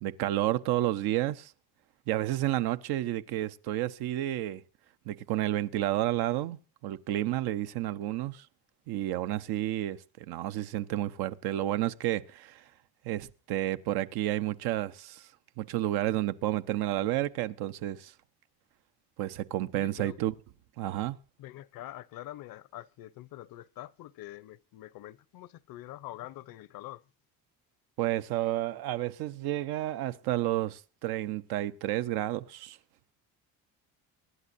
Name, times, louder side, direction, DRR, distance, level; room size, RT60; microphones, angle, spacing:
voice 1, 0.0-1.5 2.1-4.6 5.1-8.4 8.9-12.6 13.0-15.2 15.6-18.1 19.2-20.3 20.8-21.2 28.0-32.8, right 14 dB, 90° right, 0.9 m, -31 dB
voice 2, 19.7-20.2 21.4-27.0, left 14 dB, 65° left, 0.7 m, -45 dB
24.5 x 11.0 x 2.6 m
cardioid pair, 110°, 37 cm